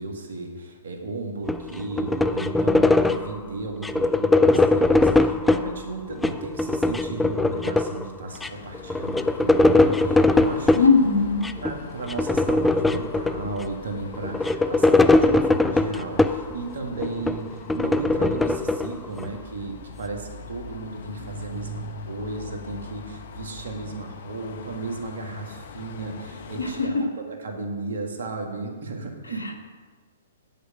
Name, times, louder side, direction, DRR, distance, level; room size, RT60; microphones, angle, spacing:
voice 1, 0.0-10.8 11.6-27.0 27.4-29.5, right 3 dB, 70° right, 2 dB, 1.9 m, -34 dB
sound 1, 1.5-3.4 3.8-5.7 6.1-8.1 8.4-8.5 8.7-10.9 11.4-11.7 12.1-13.6 14.1-16.6 17.0-19.3, left 2 dB, 5° left, 0.4 m, -21 dB
sound 2, 8.3-26.9, left 3 dB, 60° left, 0.9 m, -41 dB
voice 2, 10.7-11.5 26.6-27.0 29.2-29.5, left 4 dB, 90° left, 4 dB, 1.4 m, -20 dB
9.4 x 5.0 x 7.6 m, 1.4 s
hypercardioid pair, 120°, 0 cm